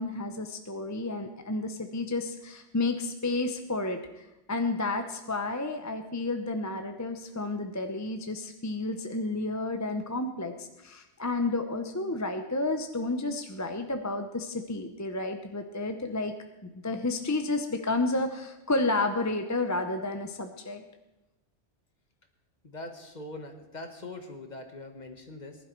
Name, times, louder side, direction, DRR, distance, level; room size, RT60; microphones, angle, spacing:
voice 1, 0.0-16.3 16.6-20.8, left 2 dB, 20° left, 6 dB, 0.7 m, -31 dB
voice 2, 22.6-25.6, left 2 dB, 40° left, 5 dB, 1.5 m, -42 dB
19.5 x 11.0 x 4.5 m, 0.97 s
omnidirectional pair, 1.1 m